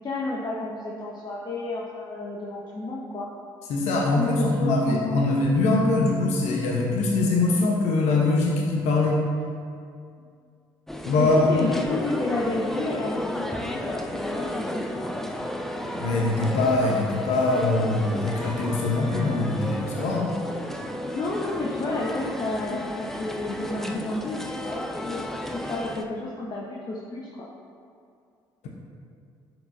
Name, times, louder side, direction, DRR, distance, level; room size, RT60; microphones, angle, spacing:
voice 1, 0.0-3.3 4.2-5.3 10.2-10.3 11.2-15.1 21.1-25.2 25.5-27.5, left 2 dB, 35° left, -4 dB, 1.1 m, -31 dB
voice 2, 3.7-9.3 11.0-11.7 15.9-20.4, left 2 dB, 65° left, -1 dB, 0.9 m, -23 dB
sound 1, 10.9-26.0, equal, 5° left, 0.6 m, -33 dB
10.5 x 4.8 x 2.6 m, 2.3 s
hypercardioid pair, 55°, 12 cm